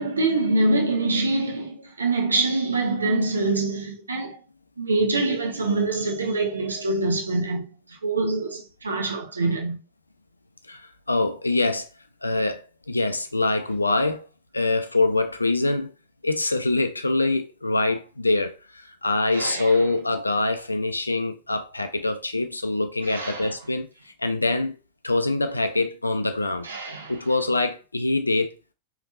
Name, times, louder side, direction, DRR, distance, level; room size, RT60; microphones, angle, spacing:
voice 1, 0.0-4.4 4.8-9.8 19.3-19.7 23.0-23.5 26.6-27.1, right 2 dB, 75° right, 0.6 m, -25 dB
voice 2, 10.7-11.9 12.2-14.3 14.5-15.9 16.2-23.9 24.2-24.7 25.0-26.7 27.1-28.5, left 2 dB, 80° left, 0.4 m, -24 dB
3.4 x 2.8 x 2.4 m
figure-of-eight pair, 90°, 0 cm